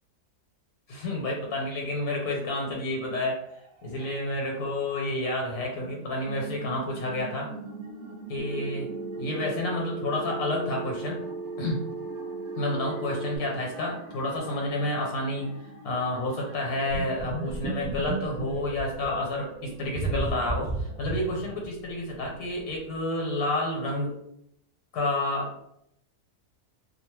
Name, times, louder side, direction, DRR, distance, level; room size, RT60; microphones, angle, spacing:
voice 1, 0.9-3.4 3.8-7.5 8.3-8.9 9.2-11.3 11.6-11.8 12.6-15.5 15.8-24.1 24.9-25.5, left 1 dB, 80° left, 0 dB, 1.2 m, -30 dB
sound 1, 3.4-21.7, right 3 dB, 80° right, 1.1 m, -45 dB
Telephone, 8.4-13.4, right 3 dB, 35° right, 0.6 m, -36 dB
sound 2, 16.9-19.2 19.9-21.9 22.2-22.3 22.7-22.8, right 2 dB, 25° left, 0.5 m, -32 dB
2.8 x 2.0 x 3.0 m, 0.75 s
omnidirectional pair, 1.6 m